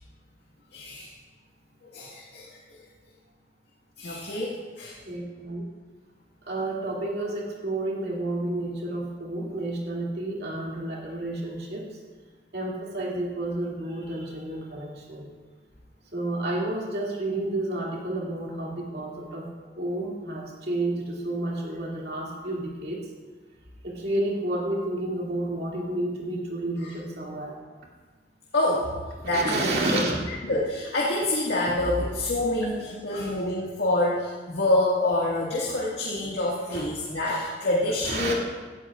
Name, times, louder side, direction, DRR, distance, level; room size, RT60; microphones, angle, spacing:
voice 1, 0.7-1.1 1.9-2.5 4.0-4.9 26.8-26.9 28.5-28.9 29.2-29.8 30.5-38.3, left 1 dB, 75° left, -5 dB, 1.9 m, -26 dB
voice 2, 5.0-5.6 6.4-11.9 12.5-15.3 16.1-19.5 19.8-23.0 23.8-27.6 29.2-30.2 31.9-32.0 35.7-35.8 36.7-36.9 38.0-38.3, right 1 dB, 65° right, -3 dB, 2.5 m, -30 dB
17.5 x 12.0 x 2.5 m, 1.4 s
head